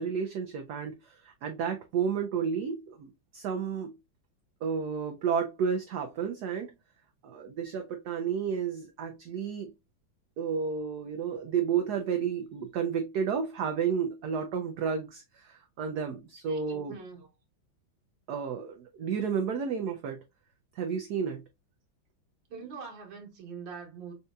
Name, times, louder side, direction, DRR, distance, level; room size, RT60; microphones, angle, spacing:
voice 1, 0.0-3.9 4.6-6.7 7.2-9.7 10.4-16.9 18.3-20.2 20.7-21.4, right 6 dB, 85° right, 0.8 m, -31 dB
voice 2, 16.5-17.3 22.5-24.1, right 5 dB, 70° right, 1.6 m, -43 dB
5.4 x 2.7 x 2.3 m
omnidirectional pair, 2.2 m